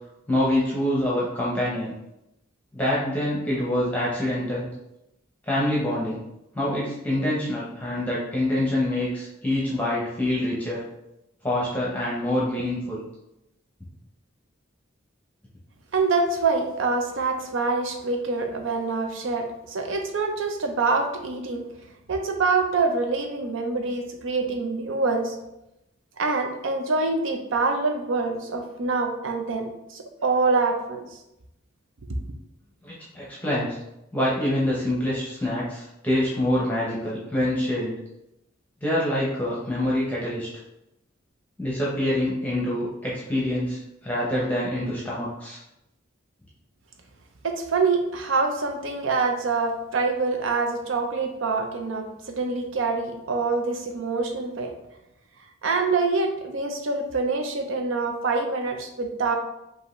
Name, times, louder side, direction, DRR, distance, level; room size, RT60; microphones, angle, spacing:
voice 1, 0.3-1.9 2.7-4.7 5.5-6.2 6.5-10.8 11.4-13.0 32.8-33.8 34.1-38.0 38.8-40.5 41.6-45.6, left 1 dB, 10° left, -6 dB, 0.8 m, -26 dB
voice 2, 15.9-21.6 22.1-25.4 26.2-31.1 47.4-54.7 55.6-59.3, right 3 dB, 70° right, 4 dB, 0.6 m, -25 dB
5.4 x 2.7 x 3.1 m, 0.88 s
head